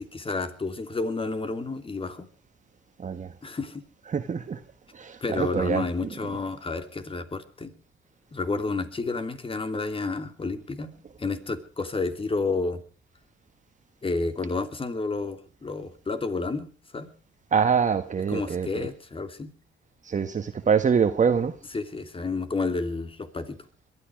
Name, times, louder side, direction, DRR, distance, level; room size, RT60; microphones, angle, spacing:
voice 1, 0.0-2.3 3.4-3.8 5.2-7.7 8.3-12.8 14.0-17.1 18.3-19.5 21.7-23.6, left 3 dB, 25° left, 2.8 m, -30 dB
voice 2, 3.0-3.3 4.1-4.6 4.9-5.8 17.5-18.9 20.0-21.5, right 6 dB, 40° right, 1.4 m, -24 dB
22.0 x 13.0 x 4.8 m
cardioid pair, 90°, 20 cm